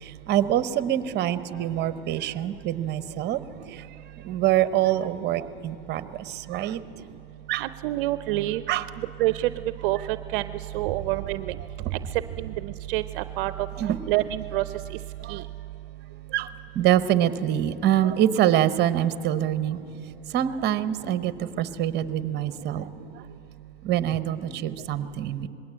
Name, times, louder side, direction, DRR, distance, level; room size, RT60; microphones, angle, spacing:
voice 1, 0.0-3.4 3.7-3.8 4.2-6.8 7.5-7.6 8.7-8.8 11.8-11.9 13.8-14.0 15.2-15.4 16.3-16.5 16.7-19.8 20.3-22.9 23.8-25.5, right 11 dB, 35° right, 14 dB, 1.0 m, -25 dB
voice 2, 7.6-8.6 9.2-9.5 9.8-10.5 10.7-11.5 12.4-12.5 12.9-13.5 14.1-14.6 15.3-15.4, right 16 dB, 60° right, 13 dB, 0.6 m, -26 dB
21.0 x 17.0 x 8.6 m, 3.0 s
hypercardioid pair, 115°, 31 cm